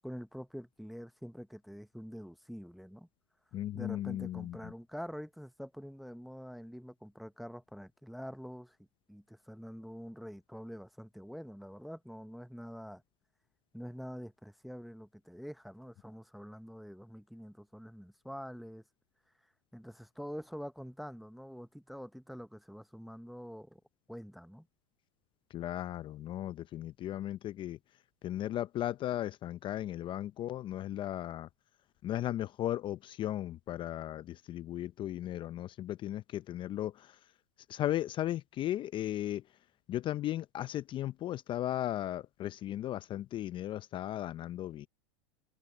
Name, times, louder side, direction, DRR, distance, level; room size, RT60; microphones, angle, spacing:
voice 1, 0.0-3.1 3.7-8.8 9.1-13.0 13.7-18.8 19.7-23.8 24.1-24.7, equal, ahead, 0.7 m, -46 dB
voice 2, 3.5-4.7 25.5-27.8 28.2-31.5 32.0-37.2 37.7-39.4 39.9-44.9, left 13 dB, 35° left, 0.5 m, -36 dB
hypercardioid pair, 115°, 15 cm